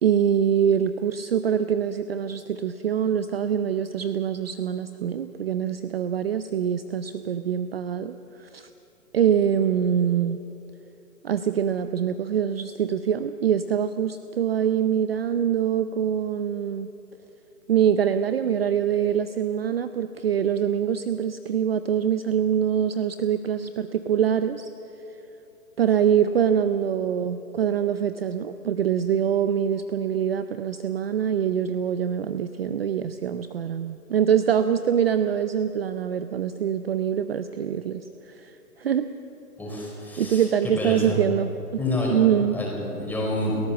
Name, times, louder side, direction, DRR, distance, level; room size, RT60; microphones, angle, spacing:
voice 1, 0.0-8.7 9.1-10.4 11.2-16.9 17.7-24.7 25.8-38.5 38.8-39.1 40.2-41.5 42.1-42.6, right 8 dB, 40° right, 11 dB, 0.6 m, -24 dB
voice 2, 39.6-41.2 41.8-42.2 42.5-43.6, left 1 dB, 5° left, -3 dB, 4.6 m, -28 dB
29.5 x 14.0 x 7.1 m, 3.0 s
hypercardioid pair, 150°, 47 cm